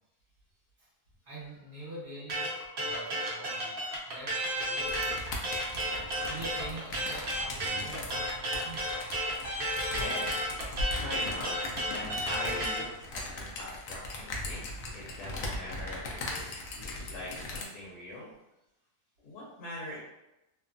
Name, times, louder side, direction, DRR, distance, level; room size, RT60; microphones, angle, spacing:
voice 1, 1.2-2.4 2.8-5.4 5.8-9.3, right 2 dB, 35° right, -10 dB, 1.4 m, -45 dB
sound 1, 2.3-12.8, right 1 dB, 55° right, 0.6 m, -32 dB
sound 2, 4.8-17.6, left 2 dB, 70° left, 0.9 m, -39 dB
voice 2, 9.9-10.3 11.0-11.5 11.8-14.7 14.9-18.3 19.2-20.0, left 1 dB, 85° left, -6 dB, 1.3 m, -42 dB
3.0 x 2.2 x 2.5 m, 0.91 s
omnidirectional pair, 1.6 m